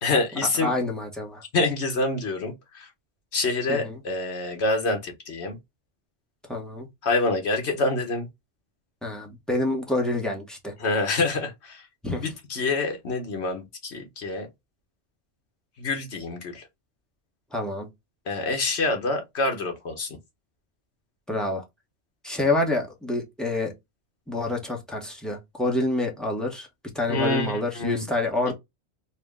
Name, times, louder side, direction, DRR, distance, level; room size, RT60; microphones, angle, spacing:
voice 1, 0.0-0.7 1.5-2.9 3.3-5.6 7.0-8.3 10.8-11.8 12.1-14.5 15.8-16.6 18.3-20.2 27.1-28.0 28.5-28.6, left 3 dB, 70° left, 1.4 m, -26 dB
voice 2, 0.5-1.4 3.7-4.0 6.5-6.9 9.0-10.7 12.0-12.3 17.5-17.9 21.3-21.6 22.2-23.7 24.3-26.7 26.9-28.5, left 2 dB, ahead, 0.8 m, -27 dB
4.2 x 2.1 x 3.5 m
omnidirectional pair, 1.2 m